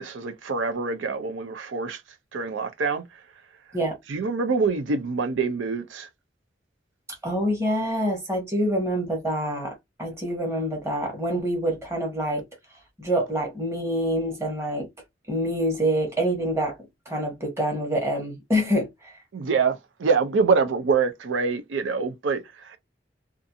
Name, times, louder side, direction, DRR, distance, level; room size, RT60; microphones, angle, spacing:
voice 1, 0.0-2.0 2.3-3.0 4.1-6.1 19.3-22.8, right 5 dB, 85° right, 0.5 m, -25 dB
voice 2, 7.2-12.4 13.0-14.9 15.3-16.7 17.1-19.2, equal, 15° right, 1.1 m, -26 dB
2.5 x 2.4 x 2.6 m
head